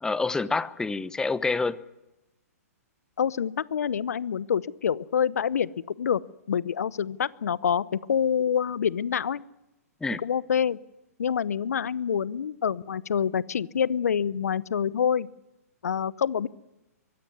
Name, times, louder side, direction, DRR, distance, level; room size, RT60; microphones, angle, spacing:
voice 1, 0.0-1.8 10.0-10.2, left 3 dB, 5° left, 16 dB, 0.9 m, -27 dB
voice 2, 3.2-6.2 6.5-9.4 10.2-10.8 11.2-15.3 15.8-16.5, left 8 dB, 70° left, 20 dB, 0.8 m, -26 dB
23.5 x 16.5 x 9.6 m, 0.98 s
hypercardioid pair, 125°, 9 cm